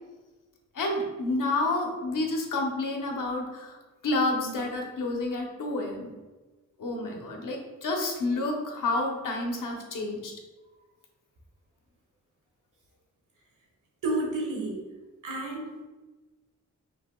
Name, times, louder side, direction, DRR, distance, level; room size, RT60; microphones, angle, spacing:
voice 1, 0.7-3.8 4.0-6.1 6.8-10.3, left 2 dB, 80° left, 1 dB, 0.9 m, -29 dB
voice 2, 14.0-14.8 15.2-15.8, right 2 dB, 85° right, -1 dB, 1.3 m, -30 dB
5.6 x 3.4 x 2.3 m, 1.2 s
wide cardioid pair, 100°, 31 cm